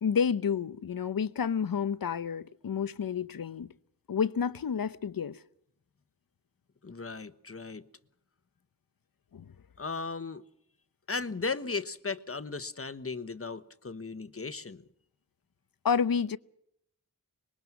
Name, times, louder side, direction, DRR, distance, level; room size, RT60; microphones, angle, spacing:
voice 1, 0.0-3.7 4.1-5.4 9.3-9.5 15.8-16.4, left 6 dB, 70° left, 0.8 m, -30 dB
voice 2, 6.8-7.9 9.8-10.4 11.1-14.8, left 4 dB, 40° left, 1.1 m, -36 dB
25.0 x 21.5 x 6.0 m
wide cardioid pair, 75°, 36 cm